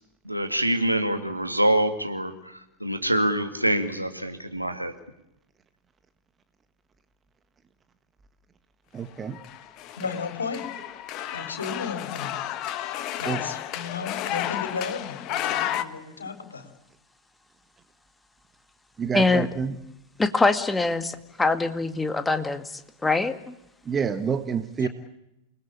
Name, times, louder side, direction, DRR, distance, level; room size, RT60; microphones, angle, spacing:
voice 1, 0.2-4.9, right 1 dB, 90° right, 7 dB, 2.6 m, -25 dB
voice 2, 8.9-9.4 13.2-13.4 19.0-19.8 23.8-24.9, right 6 dB, 20° right, 11 dB, 1.7 m, -28 dB
sound 1, 9.3-15.8, left 12 dB, 40° left, 1.6 m, -32 dB
voice 3, 10.0-10.6 11.3-12.3 13.2-16.7 24.8-24.9, left 5 dB, 75° left, 8 dB, 4.6 m, -34 dB
voice 4, 19.1-19.5 20.2-22.6 23.0-23.5, left 3 dB, 10° left, 10 dB, 2.0 m, -23 dB
28.5 x 20.5 x 8.7 m, 0.85 s
figure-of-eight pair, 90°, 0 cm